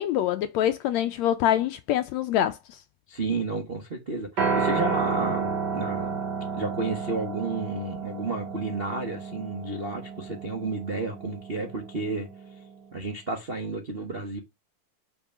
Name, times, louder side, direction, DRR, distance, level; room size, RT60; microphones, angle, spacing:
voice 1, 0.0-2.8, left 11 dB, 80° left, 1.6 m, -25 dB
voice 2, 3.1-6.2 6.6-12.3 12.9-14.4, right 3 dB, 50° right, 0.6 m, -31 dB
Piano, 4.4-12.6, right 5 dB, 35° right, 2.4 m, -31 dB
6.4 x 5.8 x 6.1 m
omnidirectional pair, 3.7 m